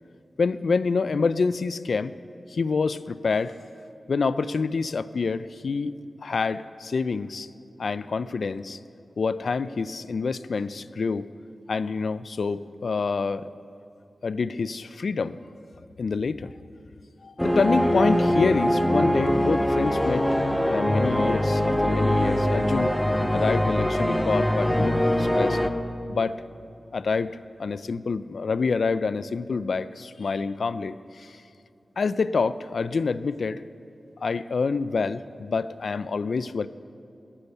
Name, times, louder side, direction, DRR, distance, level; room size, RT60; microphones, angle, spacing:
voice 1, 0.4-2.2 2.5-3.6 4.1-5.9 6.2-7.5 7.8-8.8 9.2-11.3 11.7-13.5 14.2-15.4 16.0-16.5 17.2-20.3 20.6-22.9 23.3-25.6 26.1-26.3 26.9-27.3 27.6-31.4 32.0-33.6 34.2-36.7, left 4 dB, 75° left, 15 dB, 0.3 m, -27 dB
sound 1, 17.4-25.7, equal, 10° left, 0.6 m, -23 dB
18.0 x 6.9 x 5.5 m, 2.7 s
wide cardioid pair, 85°, 0 cm